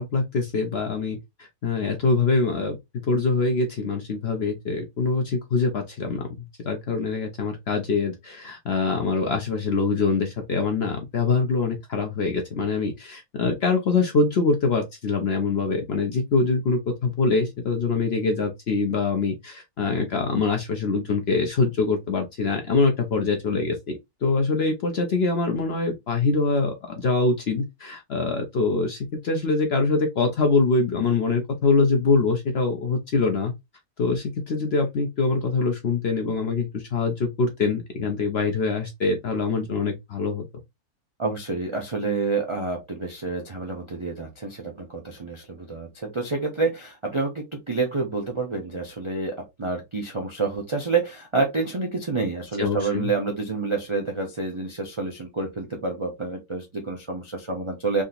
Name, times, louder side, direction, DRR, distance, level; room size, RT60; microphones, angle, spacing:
voice 1, 0.0-2.8 3.1-33.5 34.0-40.4 52.6-53.1, left 4 dB, 55° left, 0.7 m, -24 dB
voice 2, 41.2-58.0, right 3 dB, 40° right, 0.4 m, -28 dB
3.7 x 2.7 x 2.4 m
omnidirectional pair, 1.7 m